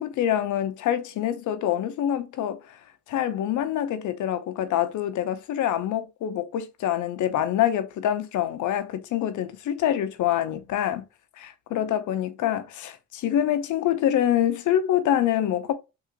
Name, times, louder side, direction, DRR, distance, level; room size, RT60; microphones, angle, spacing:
voice 1, 0.0-2.8 3.1-11.0 11.4-15.7, left 11 dB, 75° left, 0.7 m, -25 dB
3.8 x 2.7 x 2.8 m
cardioid pair, 90°, 30 cm